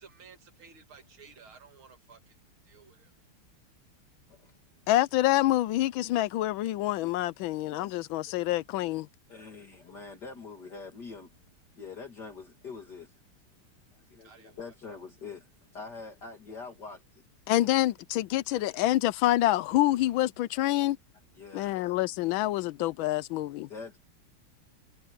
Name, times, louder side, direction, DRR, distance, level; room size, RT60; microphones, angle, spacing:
voice 1, 0.0-2.2 2.7-3.1 14.2-14.7, right 5 dB, 70° right, 3.0 m, -54 dB
voice 2, 4.9-9.1 17.5-21.0 21.5-23.7, left 15 dB, 75° left, 1.3 m, -27 dB
voice 3, 9.3-11.4 11.8-13.1 13.9-17.2 21.4-21.9 23.7-24.0, left 4 dB, 50° left, 2.9 m, -44 dB
omnidirectional pair, 2.4 m